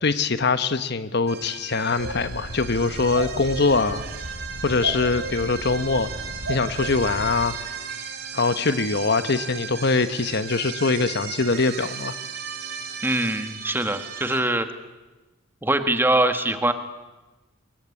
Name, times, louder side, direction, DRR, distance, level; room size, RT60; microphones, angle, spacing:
voice 1, 0.0-4.0 4.6-6.1 6.5-7.6 8.3-12.1, left 3 dB, 55° left, 12 dB, 1.1 m, -23 dB
sound 1, 1.3-14.4, right 6 dB, 50° right, 3.7 m, -36 dB
sound 2, 2.0-7.5, right 1 dB, 90° right, 4.0 m, -34 dB
voice 2, 13.0-14.7 15.6-16.7, right 1 dB, 10° right, 8 dB, 1.6 m, -23 dB
26.5 x 22.0 x 9.9 m, 1.2 s
head